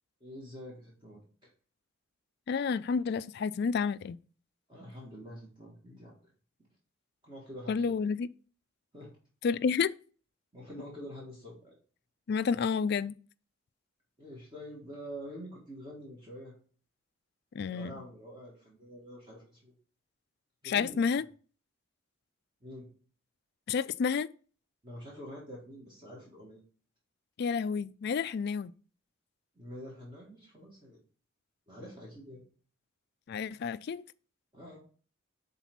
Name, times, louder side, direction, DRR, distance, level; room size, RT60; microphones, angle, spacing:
voice 1, 0.2-1.5 4.7-6.2 7.2-8.0 8.9-9.1 10.5-11.7 14.2-16.5 17.6-19.7 20.6-21.0 22.6-22.9 24.8-26.6 29.5-31.0 31.7-32.4 34.5-34.8, equal, 25° right, 1.7 m, -46 dB
voice 2, 2.5-4.2 7.7-8.3 9.4-9.9 12.3-13.1 17.5-18.0 20.6-21.2 23.7-24.3 27.4-28.7 33.3-34.0, left 5 dB, 50° left, 0.3 m, -30 dB
5.6 x 4.0 x 5.9 m
head